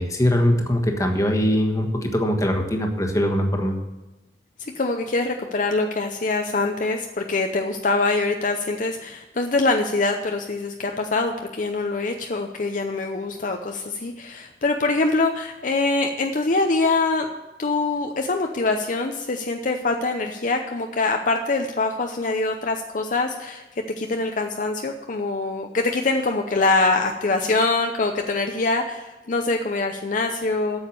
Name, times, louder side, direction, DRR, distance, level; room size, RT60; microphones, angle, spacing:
voice 1, 0.0-3.8, equal, 20° left, 3 dB, 1.4 m, -21 dB
voice 2, 4.6-17.3 17.6-23.6 24.0-30.9, left 3 dB, 45° left, 4 dB, 0.7 m, -24 dB
8.7 x 7.2 x 8.4 m, 1.1 s
head